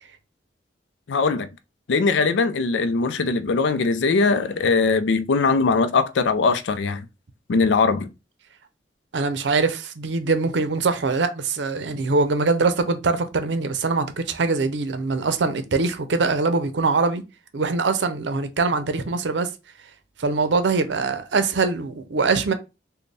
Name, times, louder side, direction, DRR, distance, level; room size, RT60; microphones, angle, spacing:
voice 1, 1.1-1.5 1.9-7.1 7.5-8.1, left 4 dB, 85° left, 0.4 m, -21 dB
voice 2, 9.1-17.2 17.5-19.5 20.2-22.5, right 4 dB, 85° right, 0.6 m, -23 dB
4.1 x 2.2 x 3.3 m
head